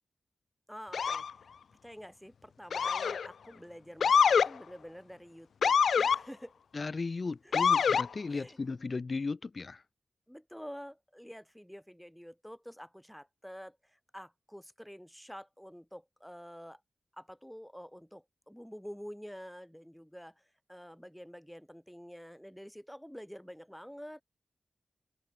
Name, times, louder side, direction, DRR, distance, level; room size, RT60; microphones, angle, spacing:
voice 1, 0.7-1.5 1.8-6.5 7.4-7.6 8.3-8.6 10.3-16.8 17.1-24.2, equal, ahead, 5.1 m, -48 dB
Motor vehicle (road) / Siren, 0.9-1.3 2.7-3.3 4.0-4.5 5.6-6.2 7.5-8.1, left 6 dB, 85° left, 0.4 m, -25 dB
voice 2, 6.7-9.8, left 4 dB, 40° left, 0.8 m, -36 dB
wide cardioid pair, 125°, 0 cm